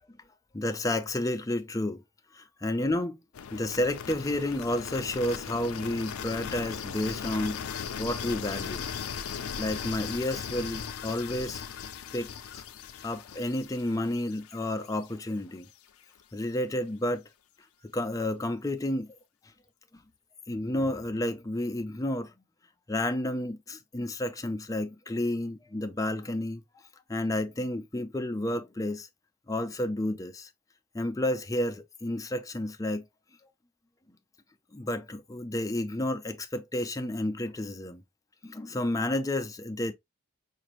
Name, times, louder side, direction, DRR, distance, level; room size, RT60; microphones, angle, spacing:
voice 1, 0.5-2.0 2.3-3.2 3.5-8.9 9.6-11.6 12.1-12.6 13.0-15.7 16.3-17.2 17.9-19.2 20.5-22.3 22.9-26.6 27.1-29.1 29.5-30.5 30.9-33.1 34.7-38.0 38.4-39.9, left 1 dB, 15° left, 0.4 m, -31 dB
sound 1, 3.3-15.3, left 7 dB, 75° left, 0.4 m, -38 dB
5.0 x 2.5 x 3.0 m
head